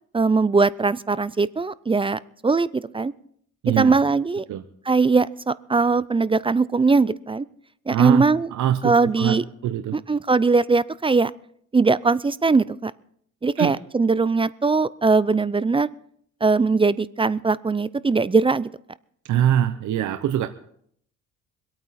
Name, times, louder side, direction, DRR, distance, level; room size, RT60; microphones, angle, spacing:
voice 1, 0.1-3.1 3.7-4.4 4.9-7.4 7.9-8.5 8.8-9.4 9.9-11.3 11.7-12.9 13.4-15.9 16.4-18.7, right 4 dB, 20° right, 18 dB, 0.4 m, -20 dB
voice 2, 3.6-4.0 4.5-4.6 7.9-10.0 13.6-13.7 19.3-20.5, right 11 dB, 75° right, 9 dB, 0.9 m, -23 dB
24.5 x 8.9 x 4.2 m, 0.65 s
cardioid pair, 90°, 30 cm